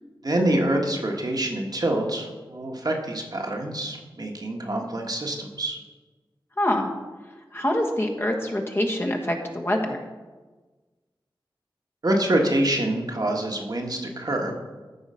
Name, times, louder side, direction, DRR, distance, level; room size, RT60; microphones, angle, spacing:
voice 1, 0.2-5.8 12.0-14.5, right 1 dB, 50° right, 1 dB, 1.5 m, -26 dB
voice 2, 6.6-6.9 7.5-10.0, left 1 dB, 25° left, 1 dB, 1.4 m, -25 dB
13.5 x 4.9 x 5.6 m, 1.3 s
wide cardioid pair, 65°, 9 cm